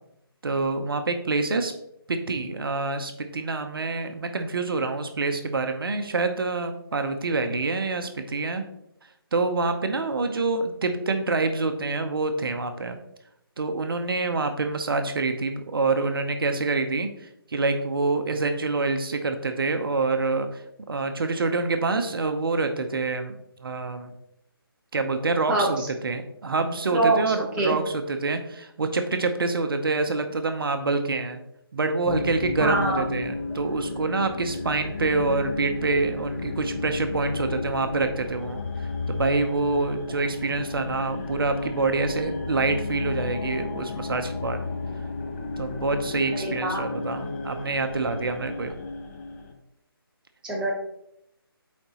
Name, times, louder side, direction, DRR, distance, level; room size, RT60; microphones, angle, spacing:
voice 1, 0.4-1.7 2.1-8.6 9.3-13.0 13.6-20.6 20.9-24.1 24.9-31.4 31.7-44.6 45.6-48.7, right 3 dB, 65° right, 7 dB, 0.8 m, -26 dB
voice 2, 25.5-25.9 26.9-27.7 32.6-33.0 46.4-46.8 50.4-50.7, right 2 dB, 5° right, -4 dB, 1.0 m, -24 dB
sound 1, 32.1-49.5, left 3 dB, 30° left, 0.9 m, -33 dB
8.7 x 4.1 x 2.9 m, 0.78 s
figure-of-eight pair, 155°, 13 cm